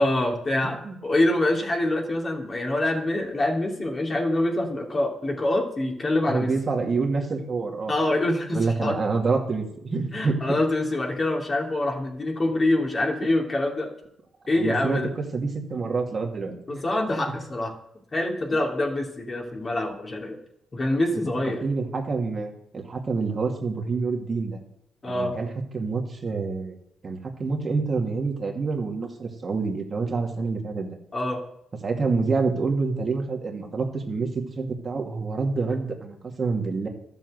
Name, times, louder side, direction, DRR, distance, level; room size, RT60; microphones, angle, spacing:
voice 1, 0.0-6.5 7.9-9.0 10.1-13.9 14.5-15.1 16.7-17.7 18.1-20.4 20.7-21.6 25.0-25.3 31.1-31.4, left 1 dB, 30° left, 0 dB, 3.0 m, -25 dB
voice 2, 6.2-7.9 8.5-10.4 14.6-16.8 18.5-18.6 21.4-24.6 25.0-25.5 25.7-26.8 27.0-30.9 31.8-36.9, right 4 dB, 35° right, 2 dB, 2.5 m, -27 dB
12.5 x 7.8 x 8.0 m, 0.78 s
cardioid pair, 90°, 0 cm